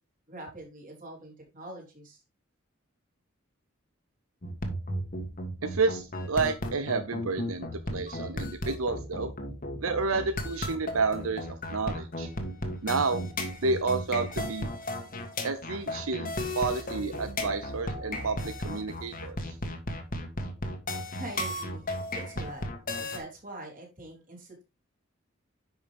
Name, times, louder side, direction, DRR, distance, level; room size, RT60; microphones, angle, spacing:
voice 1, 0.3-2.2 21.1-21.8 22.1-22.6 23.0-24.6, right 1 dB, 40° right, 0 dB, 3.7 m, -44 dB
sound 1, 4.4-23.2, left 1 dB, 45° left, 1.7 m, -34 dB
voice 2, 5.6-9.3 9.8-12.3 12.8-13.2 13.6-14.7 15.4-19.6, right 4 dB, 85° right, 10 dB, 0.8 m, -30 dB
10.5 x 5.6 x 3.6 m, 0.27 s
head